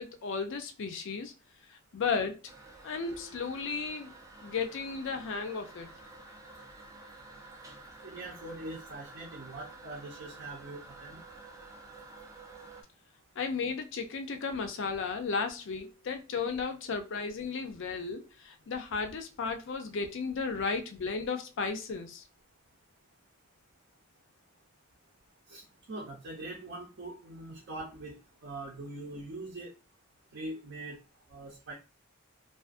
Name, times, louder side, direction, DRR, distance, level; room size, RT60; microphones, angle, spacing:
voice 1, 0.0-1.3 1.9-2.4 2.8-4.1 4.4-5.9 13.4-22.2, left 5 dB, 60° left, 0.4 m, -34 dB
Toilet flush, 2.5-12.8, right 2 dB, 15° right, 0.4 m, -51 dB
voice 2, 8.0-11.2 25.5-29.7 30.3-31.0 31.3-31.7, right 2 dB, 55° right, 0.6 m, -42 dB
2.4 x 2.4 x 2.4 m
head